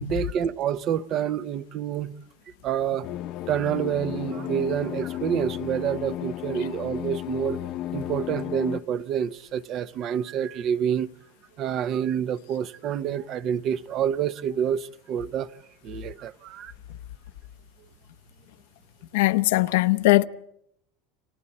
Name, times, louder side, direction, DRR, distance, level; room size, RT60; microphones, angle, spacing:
voice 1, 0.0-2.1 2.6-3.1 3.5-7.6 7.9-11.1 11.6-15.5 15.8-16.7, right 9 dB, 40° right, 0.9 m, -28 dB
sound 1, 3.0-8.8, left 13 dB, 45° left, 0.9 m, -33 dB
voice 2, 19.1-20.3, left 19 dB, 80° left, 0.8 m, -20 dB
29.5 x 26.5 x 4.3 m
supercardioid pair, 150°, 0 cm